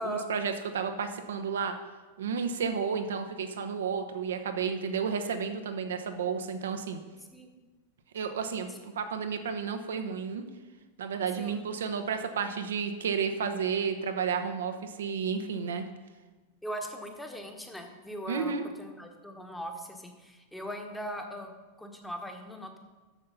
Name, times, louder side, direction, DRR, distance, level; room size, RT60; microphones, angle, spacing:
voice 1, 0.0-1.7 2.2-7.0 8.1-10.4 11.0-15.8 18.3-18.6, right 6 dB, 65° right, 7 dB, 0.9 m, -32 dB
voice 2, 16.6-21.5 21.8-22.8, equal, 5° left, 4 dB, 1.2 m, -39 dB
7.4 x 6.7 x 6.8 m, 1.3 s
figure-of-eight pair, 90°, 0 cm